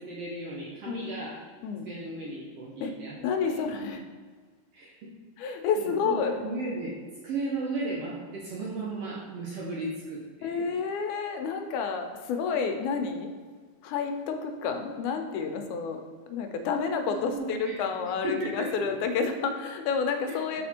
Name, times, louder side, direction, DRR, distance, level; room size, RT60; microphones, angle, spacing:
voice 1, 0.0-1.3 1.9-3.1 3.4-3.6 4.7-5.1 5.8-10.8 17.1-17.8 18.2-18.9 20.3-20.4, right 2 dB, 70° right, -5 dB, 1.5 m, -35 dB
voice 2, 3.2-4.0 5.4-6.4 10.4-13.3 13.8-16.0 16.3-20.6, left 5 dB, 80° left, 5 dB, 2.0 m, -30 dB
5.5 x 4.2 x 4.3 m, 1.5 s
omnidirectional pair, 3.5 m